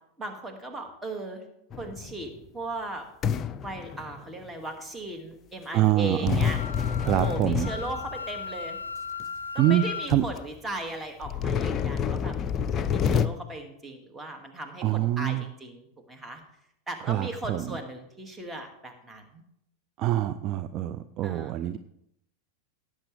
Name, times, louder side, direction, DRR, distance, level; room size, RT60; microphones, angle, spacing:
voice 1, 0.2-1.4 1.8-3.0 3.6-6.6 7.1-8.8 9.5-12.3 12.7-15.8 16.1-16.4 16.9-19.4 21.2-21.5, right 2 dB, 10° right, 4 dB, 2.3 m, -37 dB
sound 1, 1.7-2.4 3.2-4.5 6.3-8.4 9.2-9.3 9.8-9.9 10.1-10.4 11.2-13.3, left 7 dB, 25° left, 0.6 m, -28 dB
voice 2, 5.7-6.5 7.0-7.7 9.6-10.3 14.8-15.4 17.0-17.7 20.0-21.8, right 12 dB, 35° right, 11 dB, 0.5 m, -25 dB
Wind instrument woodwind instrument, 6.4-10.1, left 5 dB, 80° left, 0.4 m, -37 dB
17.5 x 8.7 x 3.5 m, 0.77 s
figure-of-eight pair, 90°, 0 cm